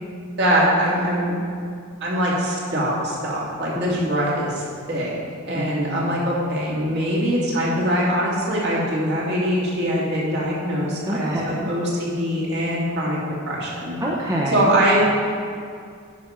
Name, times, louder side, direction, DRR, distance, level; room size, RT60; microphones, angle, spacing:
voice 1, 0.4-1.3 2.0-5.1 5.5-13.2 13.5-13.9 14.5-15.0, equal, 50° right, -5 dB, 2.2 m, -22 dB
voice 2, 3.7-4.5 5.5-6.3 11.0-11.7 14.0-14.8, right 1 dB, 15° right, -4 dB, 0.6 m, -28 dB
9.9 x 5.7 x 5.0 m, 2.3 s
head